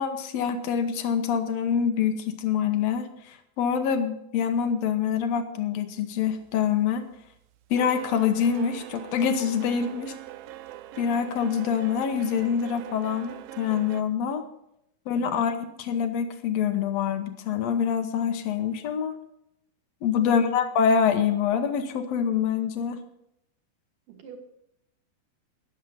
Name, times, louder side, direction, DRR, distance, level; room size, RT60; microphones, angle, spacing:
voice 1, 0.0-7.0 7.7-10.1 11.0-14.4 15.1-19.2 20.0-23.0, left 7 dB, 70° left, 7 dB, 1.6 m, -25 dB
sound 1, 6.4-6.8 7.1-14.0, right 14 dB, 85° right, 2.4 m, -42 dB
voice 2, 15.2-15.6 20.2-20.6 24.1-24.4, right 10 dB, 65° right, 4 dB, 3.1 m, -41 dB
20.0 x 7.4 x 4.2 m, 0.79 s
omnidirectional pair, 4.2 m